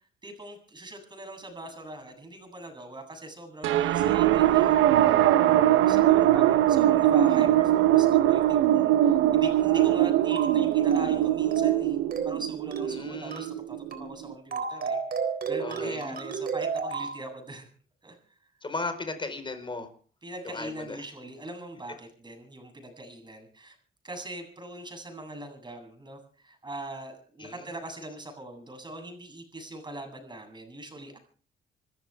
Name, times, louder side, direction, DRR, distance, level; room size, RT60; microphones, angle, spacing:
voice 1, 0.2-12.0 12.2-15.0 15.5-17.7 18.0-18.2 20.2-23.8 24.0-31.2, right 1 dB, 20° right, 4 dB, 7.9 m, -41 dB
sound 1, 3.6-14.3, right 13 dB, 85° right, 1.0 m, -22 dB
voice 2, 5.1-5.4 12.9-13.5 15.6-16.0 18.6-19.9 20.4-21.0 27.4-27.7, left 3 dB, 25° left, 8 dB, 4.7 m, -36 dB
sound 2, 10.3-10.6 10.9-11.2 11.5-11.8 12.1-12.4 12.7-13.0 13.3-13.6 13.9-14.1 14.5-17.2, right 5 dB, 50° right, 3.7 m, -32 dB
27.0 x 14.5 x 3.6 m, 0.43 s
cardioid pair, 90°, 20 cm